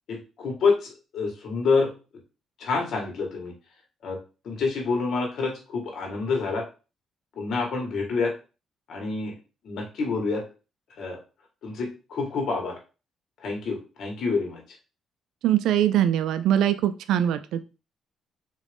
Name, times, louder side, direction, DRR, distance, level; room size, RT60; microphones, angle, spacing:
voice 1, 0.1-1.9 2.6-3.5 4.0-4.2 4.4-6.6 7.3-8.3 8.9-9.3 9.6-10.4 11.0-11.2 11.6-12.8 13.4-14.6, left 4 dB, 65° left, 1 dB, 1.6 m, -27 dB
voice 2, 15.4-17.6, right 11 dB, 85° right, 11 dB, 0.3 m, -22 dB
3.9 x 3.0 x 3.4 m, 0.32 s
cardioid pair, 90°, 0 cm